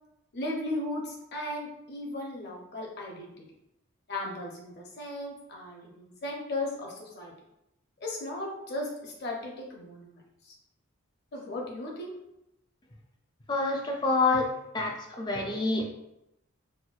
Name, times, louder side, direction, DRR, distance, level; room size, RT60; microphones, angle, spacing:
voice 1, 0.3-3.4 4.1-7.3 8.0-10.2 10.5-10.6 11.3-12.1, left 1 dB, 50° left, -2 dB, 0.7 m, -36 dB
voice 2, 13.5-14.5 14.7-15.8, left 3 dB, 20° left, 2 dB, 0.3 m, -27 dB
4.2 x 2.1 x 2.3 m, 0.84 s
head